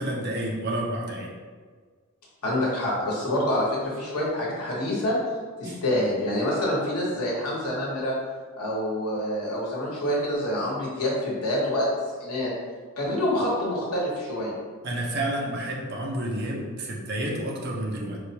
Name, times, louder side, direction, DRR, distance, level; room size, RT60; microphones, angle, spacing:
voice 1, 0.0-1.3 5.6-5.8 14.8-18.2, right 1 dB, 50° right, -1 dB, 0.6 m, -30 dB
voice 2, 2.4-5.2 5.6-8.1 8.6-11.9 12.2-12.5 13.0-14.5, left 1 dB, 80° left, -4 dB, 1.0 m, -26 dB
4.6 x 2.2 x 2.8 m, 1.5 s
head